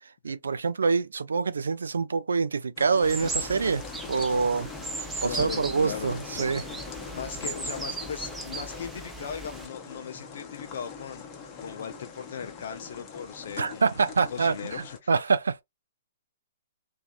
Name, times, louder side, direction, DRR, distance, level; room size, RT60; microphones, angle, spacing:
voice 1, 0.2-4.7 5.2-6.7 13.6-15.6, right 5 dB, 75° right, 0.4 m, -26 dB
sound 1, 2.8-15.0, left 6 dB, 30° left, 0.8 m, -42 dB
sound 2, 3.0-9.7, right 3 dB, 10° right, 0.6 m, -37 dB
voice 2, 5.1-6.2 7.1-11.3 11.6-14.0 14.3-15.1, left 7 dB, 60° left, 0.3 m, -38 dB
2.6 x 2.3 x 2.4 m
figure-of-eight pair, 120°, 0 cm